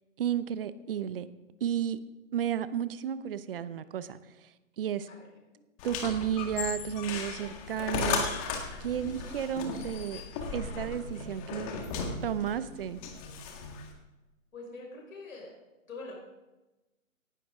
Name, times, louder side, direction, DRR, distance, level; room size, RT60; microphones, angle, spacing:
voice 1, 0.2-1.3 1.6-2.0 2.3-4.5 4.8-5.1 5.8-8.3 8.8-10.2 10.5-11.7 12.2-13.0, right 9 dB, 45° right, 0.8 m, -32 dB
sound 1, 5.8-13.9, left 5 dB, 25° left, 1.9 m, -36 dB
voice 2, 14.5-15.5 15.9-16.1, left 3 dB, 80° left, 5.6 m, -43 dB
18.0 x 11.5 x 3.8 m
hypercardioid pair, 150°, 40 cm